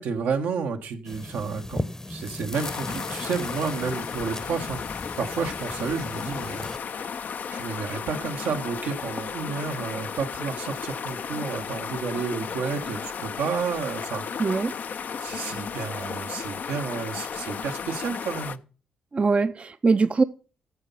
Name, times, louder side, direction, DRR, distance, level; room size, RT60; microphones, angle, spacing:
voice 1, 0.0-4.8 5.2-6.7 7.5-14.2 15.2-18.6, right 5 dB, 80° right, 1.1 m, -31 dB
sound 1, 1.0-6.8, left 2 dB, 15° left, 0.8 m, -37 dB
sound 2, 2.5-18.6, left 6 dB, 60° left, 0.5 m, -34 dB
voice 2, 14.4-14.7 19.1-20.2, right 4 dB, 40° right, 0.5 m, -22 dB
9.6 x 7.2 x 5.4 m
supercardioid pair, 50°, 3 cm